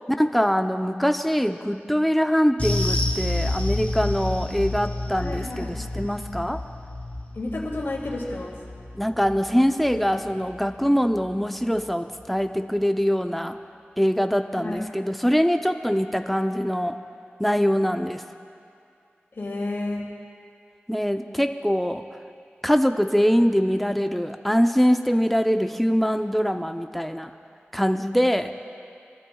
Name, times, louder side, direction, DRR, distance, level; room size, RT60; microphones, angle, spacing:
voice 1, 0.1-6.6 9.0-13.6 14.0-17.0 17.4-18.2 20.9-22.0 22.6-27.3 27.7-28.5, equal, ahead, 6 dB, 0.7 m, -23 dB
sound 1, 2.6-11.3 11.5-11.8 12.2-12.3, left 1 dB, 35° left, 2.8 m, -30 dB
voice 2, 5.2-5.7 7.3-8.6 14.6-14.9 19.4-20.1, left 2 dB, 75° left, -3 dB, 2.7 m, -31 dB
24.0 x 13.0 x 2.4 m, 2.4 s
wide cardioid pair, 50°, 4 cm